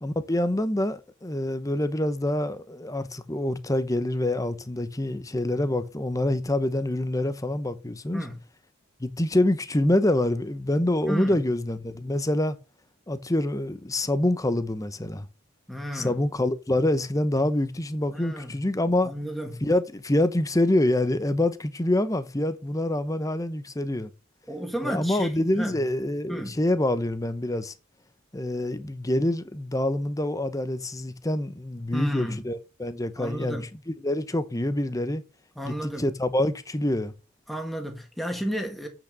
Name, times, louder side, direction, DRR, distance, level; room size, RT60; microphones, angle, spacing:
voice 1, 0.0-8.2 9.0-12.6 13.1-15.3 15.9-19.1 19.6-24.1 24.8-27.7 28.3-33.6 33.9-35.2 35.6-37.1, left 1 dB, 15° left, 0.8 m, -26 dB
voice 2, 11.1-11.4 15.7-16.1 18.1-18.5 19.0-19.6 24.5-25.3 25.5-25.7 26.3-26.6 31.9-32.4 33.2-33.7 35.5-36.1 37.5-38.9, equal, ahead, 1.7 m, -32 dB
8.4 x 6.0 x 6.7 m
head